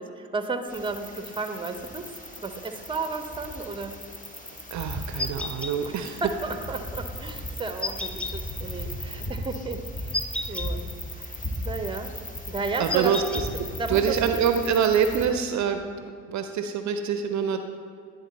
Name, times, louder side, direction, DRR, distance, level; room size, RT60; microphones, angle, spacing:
voice 1, 0.0-2.1 2.4-3.9 5.8-10.1 10.5-10.9 11.2-11.4 11.6-12.1 12.5-13.2 13.8-14.1, right 3 dB, 15° right, 7 dB, 0.7 m, -33 dB
sound 1, 0.7-15.3, left 1 dB, 20° left, 1.3 m, -37 dB
voice 2, 4.7-6.2 12.8-13.2 13.9-17.6, right 7 dB, 50° right, 7 dB, 0.5 m, -25 dB
sound 2, 5.2-5.7 7.8-8.3 10.1-10.7 12.9-13.5, left 2 dB, 5° left, 0.3 m, -31 dB
10.5 x 3.9 x 4.1 m, 2.3 s
hypercardioid pair, 55°, 38 cm